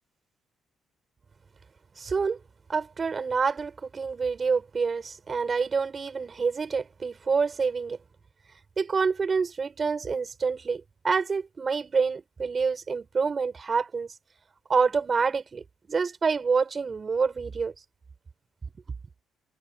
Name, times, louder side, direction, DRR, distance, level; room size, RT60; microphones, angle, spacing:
voice 1, 2.0-2.4 2.7-8.0 8.8-14.1 14.7-17.7, right 5 dB, 40° right, 4.6 m, -27 dB
cardioid pair, 90°, 0 cm